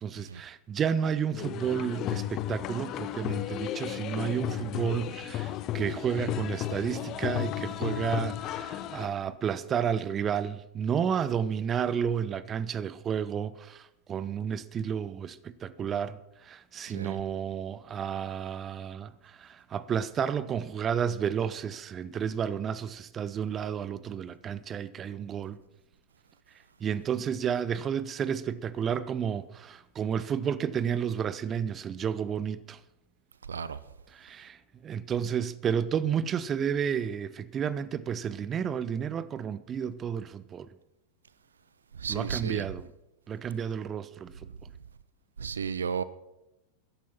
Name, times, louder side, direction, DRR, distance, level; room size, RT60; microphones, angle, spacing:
voice 1, 0.0-25.6 26.8-32.8 34.1-40.7 42.1-42.9 43.3-44.3, right 8 dB, 25° right, 0.6 m, -31 dB
sound 1, 1.4-9.1, left 13 dB, 35° left, 0.8 m, -34 dB
voice 2, 33.5-33.8 42.0-42.6 45.4-46.0, right 6 dB, 70° right, 0.6 m, -33 dB
14.0 x 11.0 x 5.8 m
figure-of-eight pair, 90°, 0 cm